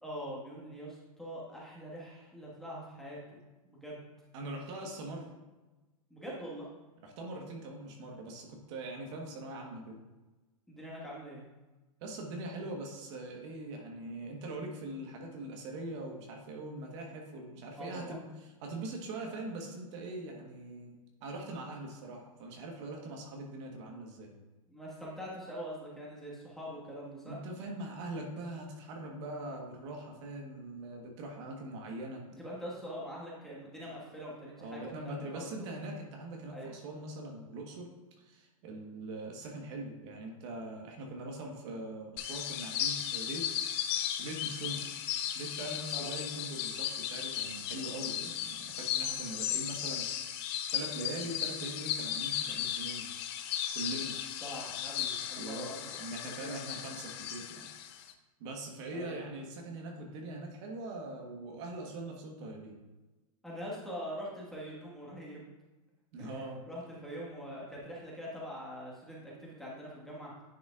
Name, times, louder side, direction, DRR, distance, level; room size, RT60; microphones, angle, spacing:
voice 1, 0.0-3.4 3.6-4.0 6.1-6.7 10.7-11.4 17.7-18.2 24.7-27.4 32.4-35.5 36.5-36.7 45.9-46.1 54.4-56.7 58.9-59.1 63.4-65.5 66.2-70.3, equal, ahead, -6 dB, 1.5 m, -43 dB
voice 2, 4.3-5.3 7.0-10.0 12.0-18.3 18.6-24.3 27.3-32.2 34.6-37.9 38.2-43.5 43.8-44.9 45.3-50.4 50.7-53.1 53.7-54.2 55.3-55.7 56.0-58.0 58.4-62.8 66.1-66.6, right 2 dB, 55° right, 1 dB, 1.3 m, -42 dB
sound 1, 42.2-58.1, left 10 dB, 50° left, 0.6 m, -36 dB
10.0 x 5.0 x 2.4 m, 1.1 s
supercardioid pair, 145°, 18 cm